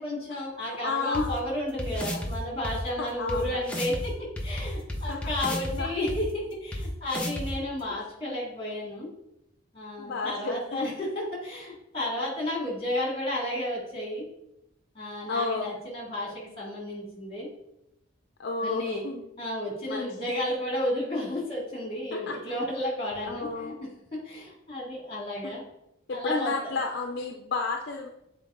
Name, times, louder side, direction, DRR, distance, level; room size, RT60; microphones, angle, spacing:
voice 1, 0.0-4.1 4.4-9.1 9.7-14.2 14.9-17.5 18.6-19.0 19.4-25.6 26.1-26.7, left 1 dB, 25° left, -3 dB, 2.3 m, -32 dB
voice 2, 0.8-1.3 3.0-3.6 5.1-5.2 5.4-5.9 10.0-10.8 15.3-15.7 18.4-19.3 19.9-20.3 22.1-22.6 23.3-23.7 25.4-25.5 26.1-28.1, left 4 dB, 55° left, 3 dB, 0.5 m, -32 dB
sound 1, 1.1-1.2 1.8-2.3 2.6-2.7 3.3-3.4 3.7-4.0 4.4-5.7 6.1-6.2 6.7-6.8 7.1-7.5, left 1 dB, 5° left, 0.9 m, -32 dB
7.6 x 4.3 x 3.8 m, 0.89 s
head